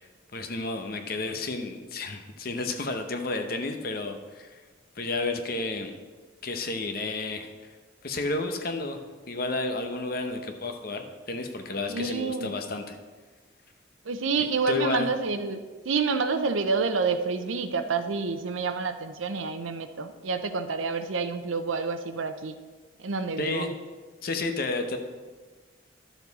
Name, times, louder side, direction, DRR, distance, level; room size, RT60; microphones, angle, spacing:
voice 1, 0.3-4.6 5.0-5.9 6.4-7.5 8.0-9.0 9.3-13.0 14.4-15.1 23.4-23.7 24.2-25.0, left 3 dB, 50° left, 5 dB, 0.9 m, -31 dB
voice 2, 11.9-12.5 14.0-15.6 15.8-22.6 23.0-23.7, right 4 dB, 90° right, 10 dB, 0.7 m, -28 dB
11.5 x 7.2 x 4.1 m, 1.4 s
head